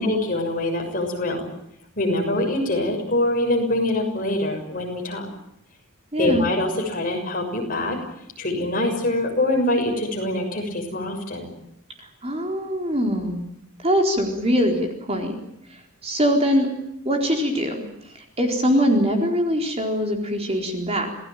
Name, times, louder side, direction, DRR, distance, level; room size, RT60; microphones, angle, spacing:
voice 1, 0.0-1.5 2.0-5.2 6.2-8.0 8.4-11.5, left 1 dB, 40° left, 2 dB, 6.7 m, -24 dB
voice 2, 6.1-6.5 12.0-13.4 13.8-15.4 15.7-16.7 17.0-21.1, equal, 30° right, 2 dB, 4.2 m, -23 dB
27.5 x 18.5 x 9.1 m, 0.78 s
head